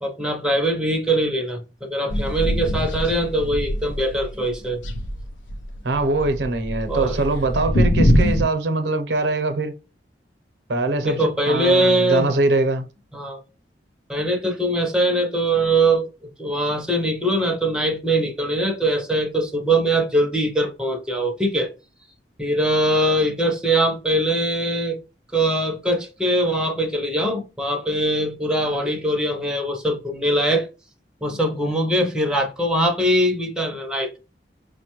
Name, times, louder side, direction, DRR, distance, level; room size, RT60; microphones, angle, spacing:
voice 1, 0.0-4.8 6.9-7.3 11.0-12.3 13.1-13.4 14.1-16.1 16.4-21.7 22.4-25.0 25.3-30.7 31.2-34.1, right 1 dB, 5° right, 0.5 m, -22 dB
sound 1, 2.1-4.4 4.7-8.4, equal, 90° left, 0.5 m, -23 dB
voice 2, 5.8-9.7 10.7-11.2 11.5-12.9, right 2 dB, 70° right, 0.6 m, -22 dB
5.1 x 2.1 x 2.9 m
head